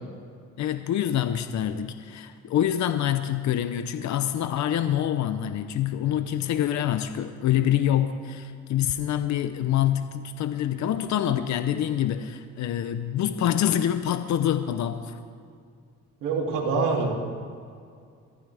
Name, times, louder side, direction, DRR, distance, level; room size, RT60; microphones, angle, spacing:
voice 1, 0.6-15.2, left 10 dB, 70° left, 10 dB, 0.8 m, -26 dB
voice 2, 16.2-17.1, right 4 dB, 90° right, -1 dB, 2.9 m, -25 dB
23.0 x 14.5 x 3.5 m, 2.3 s
cardioid pair, 90°, 30 cm